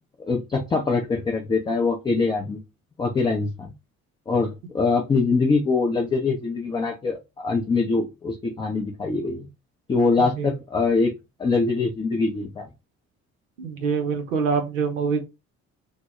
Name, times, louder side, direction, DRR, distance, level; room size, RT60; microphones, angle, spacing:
voice 1, 0.2-2.6 3.0-3.7 4.3-9.5 9.9-11.1 11.4-12.6, left 4 dB, 10° left, 0 dB, 0.4 m, -23 dB
voice 2, 10.2-10.5 13.6-15.2, right 5 dB, 75° right, 5 dB, 0.7 m, -25 dB
2.1 x 2.0 x 3.4 m, 0.25 s
figure-of-eight pair, 50°, 40 cm